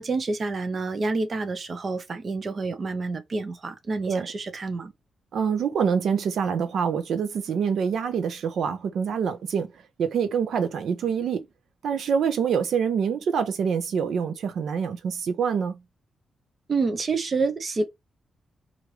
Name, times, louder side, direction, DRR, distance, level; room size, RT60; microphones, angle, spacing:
voice 1, 0.0-4.9 16.7-17.9, right 3 dB, 40° right, 0.7 m, -28 dB
voice 2, 5.3-11.5 11.8-15.8, right 6 dB, 75° right, 0.6 m, -26 dB
4.5 x 2.6 x 3.1 m
cardioid pair, 110°, 0 cm